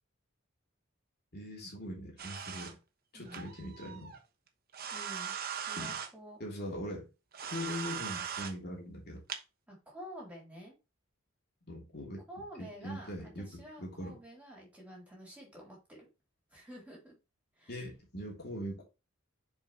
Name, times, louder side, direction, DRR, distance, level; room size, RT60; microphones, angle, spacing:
voice 1, 1.3-2.8 3.1-4.2 5.8-5.9 6.4-7.1 7.4-9.2 11.7-12.3 12.6-14.2 17.7-18.8, equal, 50° left, 3.1 m, -41 dB
sound 1, 2.2-2.7 3.2-4.2 4.7-6.1 7.3-8.5 9.3-9.4, right 8 dB, 50° right, 1.1 m, -40 dB
voice 2, 3.1-3.5 4.9-5.3 5.6-6.4 9.7-10.7 12.3-16.1 16.5-17.1 17.6-17.7, equal, 5° right, 3.8 m, -49 dB
7.2 x 4.9 x 3.2 m
head